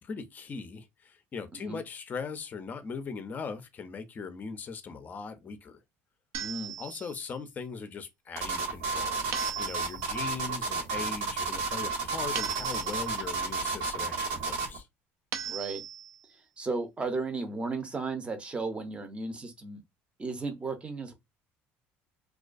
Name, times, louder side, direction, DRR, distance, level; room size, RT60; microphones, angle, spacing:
voice 1, 0.0-5.8 6.8-9.3 9.6-14.9, left 5 dB, 35° left, 0.5 m, -40 dB
sound 1, 6.3-7.3 9.3-10.2 12.4-13.3 15.3-16.2, right 9 dB, 65° right, 0.5 m, -38 dB
voice 2, 6.4-6.7 15.4-15.8 16.6-19.8 20.2-21.1, right 3 dB, 20° right, 0.6 m, -34 dB
sound 2, 8.4-14.8, right 4 dB, 85° right, 1.1 m, -32 dB
2.3 x 2.2 x 2.5 m
supercardioid pair, 105°, 5 cm